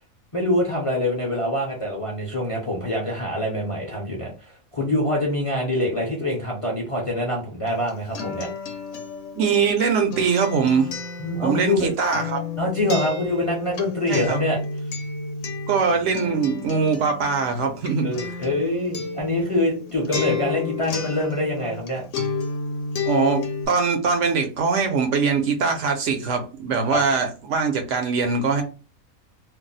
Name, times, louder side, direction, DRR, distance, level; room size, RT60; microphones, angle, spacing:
voice 1, 0.3-8.5 11.2-11.9 12.6-14.6 18.0-22.0 26.9-27.0, left 1 dB, 35° left, -2 dB, 0.5 m, -25 dB
Acoustic guitar, 7.7-21.9 22.1-23.7, left 5 dB, 65° left, 1.0 m, -31 dB
voice 2, 9.4-10.9 11.4-12.4 14.1-14.4 15.7-18.1 23.1-28.6, right 5 dB, 65° right, 4 dB, 0.9 m, -22 dB
2.6 x 2.0 x 3.8 m, 0.33 s
omnidirectional pair, 1.4 m